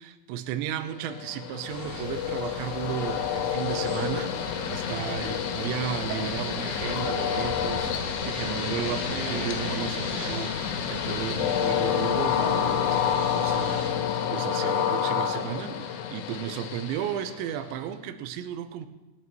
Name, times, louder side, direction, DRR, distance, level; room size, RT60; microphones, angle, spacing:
voice 1, 0.0-18.9, right 9 dB, 80° right, 9 dB, 2.8 m, -34 dB
Train, 1.0-17.8, left 8 dB, 80° left, 3.6 m, -29 dB
sound 1, 1.6-13.9, right 1 dB, 35° right, 3.5 m, -39 dB
sound 2, 6.1-11.3, right 4 dB, 60° right, 2.7 m, -42 dB
27.5 x 11.0 x 3.1 m, 1.1 s
omnidirectional pair, 5.9 m